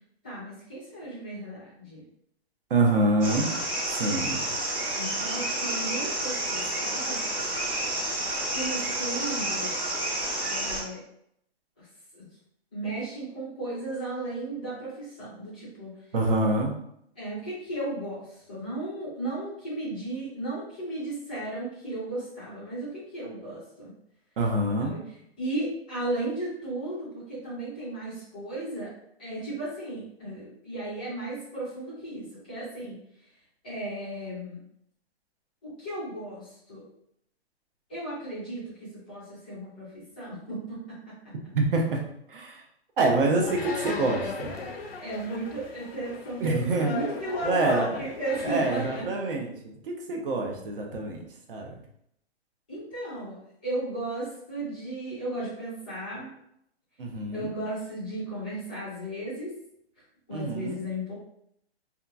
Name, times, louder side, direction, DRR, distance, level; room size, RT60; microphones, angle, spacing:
voice 1, 0.2-2.0 4.9-7.3 8.4-9.8 10.5-11.0 11.8-11.9 12.1-12.3 12.7-16.0 17.2-23.9 24.8-25.0 25.4-28.9 29.2-33.0 33.6-34.6 35.6-36.8 37.9-41.1 45.0-49.1 52.7-56.3 57.3-59.5 60.3-61.1, right 1 dB, 10° left, -12 dB, 0.4 m, -35 dB
voice 2, 2.7-3.5 3.9-4.4 16.1-16.7 24.4-24.9 41.5-42.0 42.3-42.6 43.0-44.6 46.4-46.9 47.4-47.9 48.4-49.5 49.9-51.2 51.5-51.7 57.0-57.5 60.3-60.8, right 2 dB, 55° right, 1 dB, 0.7 m, -26 dB
sound 1, 3.2-10.8, right 1 dB, 30° right, 1.3 m, -30 dB
sound 2, 43.4-49.0, left 4 dB, 65° left, 0.6 m, -36 dB
2.8 x 2.3 x 2.4 m, 0.73 s
hypercardioid pair, 170°, 33 cm